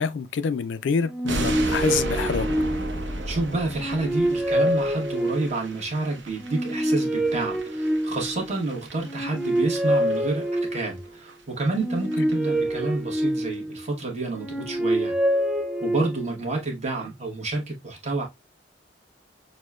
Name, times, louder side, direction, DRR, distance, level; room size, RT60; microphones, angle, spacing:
voice 1, 0.0-2.5, left 5 dB, 65° left, 0.3 m, -26 dB
sound 1, 1.1-3.2 3.7-5.7 6.4-8.5 9.0-11.0 11.7-13.9 14.3-16.4, right 1 dB, 5° right, 0.4 m, -26 dB
sound 2, 1.3-10.4 10.7-10.9 11.3-11.4 11.7-11.8 12.0-12.3 12.6-12.7, right 2 dB, 65° right, 0.8 m, -35 dB
voice 2, 3.3-15.1 15.8-18.2, right 2 dB, 35° right, 1.2 m, -29 dB
6.2 x 2.1 x 2.3 m
head